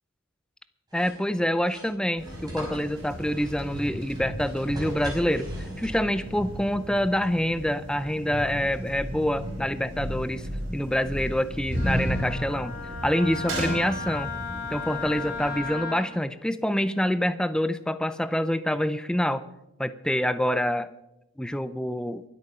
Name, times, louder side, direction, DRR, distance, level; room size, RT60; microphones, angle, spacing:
voice 1, 0.9-12.8 13.0-14.3 14.7-19.4 19.8-20.9 21.4-22.2, equal, 5° left, 13 dB, 0.4 m, -26 dB
sound 1, 0.9-6.3, right 1 dB, 20° right, 5.4 m, -44 dB
sound 2, 2.2-15.6, equal, 60° right, 5.2 m, -34 dB
Wind instrument woodwind instrument, 11.8-16.1, left 4 dB, 40° left, 3.5 m, -35 dB
23.0 x 8.6 x 5.5 m, 0.92 s
head